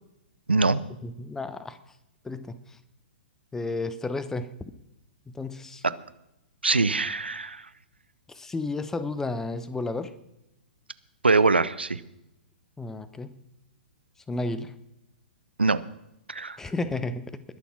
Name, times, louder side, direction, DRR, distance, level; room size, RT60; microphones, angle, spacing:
voice 1, 0.5-0.8 5.8-5.9 6.6-7.7 11.2-12.0 15.6-15.8 16.3-16.6, right 3 dB, 80° right, 16 dB, 0.7 m, -23 dB
voice 2, 1.0-1.8 2.2-2.8 3.5-4.5 5.3-5.8 8.3-10.1 12.8-13.4 14.3-14.8 16.6-17.4, left 2 dB, 10° left, 14 dB, 0.7 m, -32 dB
20.5 x 7.1 x 5.9 m, 0.86 s
figure-of-eight pair, 110°, 6 cm